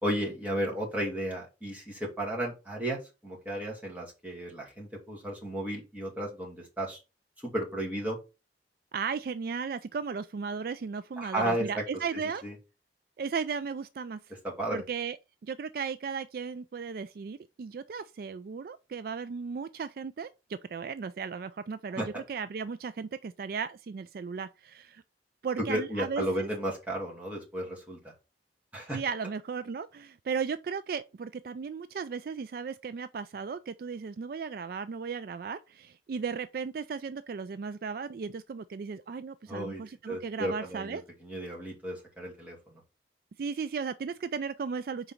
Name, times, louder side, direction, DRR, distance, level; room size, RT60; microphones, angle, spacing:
voice 1, 0.0-7.0 7.4-8.2 11.2-11.8 12.1-12.5 14.4-14.8 22.0-22.1 25.7-28.0 28.7-29.0 39.5-42.6, right 1 dB, 10° right, 2.3 m, -34 dB
voice 2, 8.9-12.4 13.2-14.2 14.7-15.2 15.4-25.0 25.4-26.5 28.9-41.0 43.4-45.1, right 5 dB, 55° right, 0.3 m, -36 dB
4.9 x 4.0 x 5.8 m
head